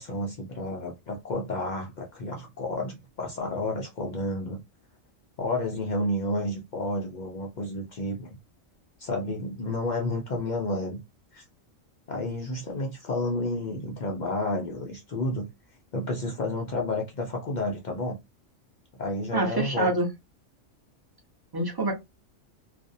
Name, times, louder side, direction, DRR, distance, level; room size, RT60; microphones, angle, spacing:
voice 1, 0.0-4.6 5.4-8.4 9.0-11.0 11.3-11.4 12.1-15.5 15.9-18.2 19.0-19.9, left 2 dB, 70° left, 0.4 m, -31 dB
voice 2, 19.3-20.1 21.5-21.9, right 2 dB, 30° right, 0.4 m, -26 dB
2.4 x 2.0 x 2.6 m
omnidirectional pair, 1.4 m